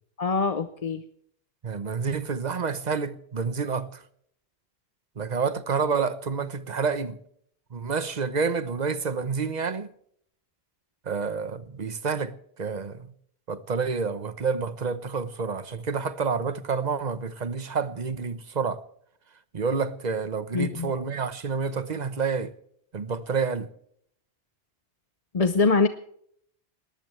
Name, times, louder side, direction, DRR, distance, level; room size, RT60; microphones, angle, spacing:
voice 1, 0.2-1.0 20.5-20.9 25.3-25.9, left 4 dB, 40° left, 0.8 m, -23 dB
voice 2, 1.6-4.0 5.2-7.2 7.7-9.9 11.1-13.1 13.5-18.8 19.5-22.5 22.9-23.7, right 5 dB, 45° right, 1.1 m, -29 dB
20.0 x 19.0 x 3.3 m
omnidirectional pair, 1.1 m